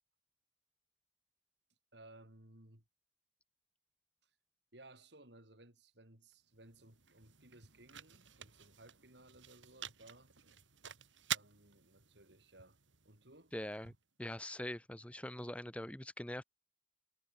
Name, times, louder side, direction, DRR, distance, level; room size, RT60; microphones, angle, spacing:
voice 1, 1.9-2.8 4.7-10.3 11.3-13.5 13.8-14.0, right 1 dB, 65° right, 5.3 m, -60 dB
sound 1, 6.3-14.4, right 10 dB, 85° right, 3.9 m, -48 dB
voice 2, 13.5-13.9 14.2-16.4, left 1 dB, 5° left, 0.8 m, -43 dB
head